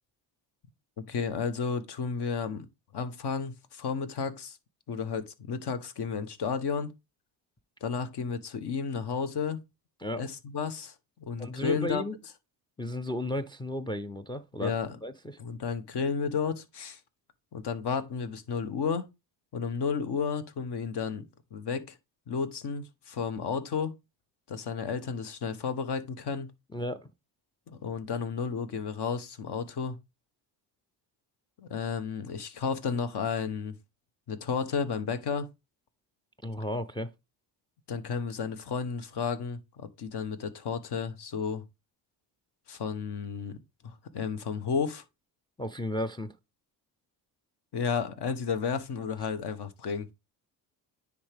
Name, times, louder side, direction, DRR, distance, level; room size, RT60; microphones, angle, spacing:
voice 1, 1.0-2.7 2.9-4.6 4.9-6.9 7.8-9.6 10.2-12.0 14.6-15.0 15.4-17.0 17.5-19.1 19.5-22.0 22.3-23.9 24.5-26.5 27.7-30.0 31.6-33.7 34.3-35.5 37.9-41.6 42.7-43.6 43.8-45.0 47.7-50.1, left 6 dB, 55° left, 1.2 m, -32 dB
voice 2, 11.4-12.2 12.8-14.7 15.0-15.4 26.7-27.1 36.4-37.1 45.6-46.3, left 1 dB, 10° left, 0.4 m, -34 dB
9.7 x 3.6 x 3.5 m
supercardioid pair, 70°, 47 cm